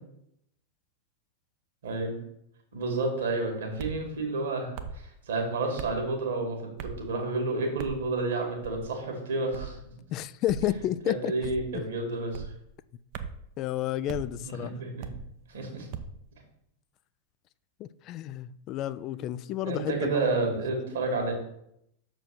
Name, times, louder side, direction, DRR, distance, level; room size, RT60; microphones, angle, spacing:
voice 1, 1.8-2.2 2.7-9.8 11.1-12.5 14.4-15.1 15.5-15.9 19.6-21.3, right 3 dB, 65° right, 2.2 m, -30 dB
sound 1, 3.8-4.0 4.8-5.0 5.8-6.0 6.8-7.1 7.8-8.0 8.6-8.9 9.5-9.8 10.5-10.7 11.4-11.7 12.3-12.6 13.1-13.4 14.1-14.3 15.0-15.3 15.9-16.2, right 7 dB, 45° right, 0.7 m, -39 dB
voice 2, 10.1-11.8 13.6-14.7 17.8-21.2, left 13 dB, 35° left, 0.3 m, -32 dB
6.6 x 4.5 x 6.4 m
figure-of-eight pair, 90°, 0 cm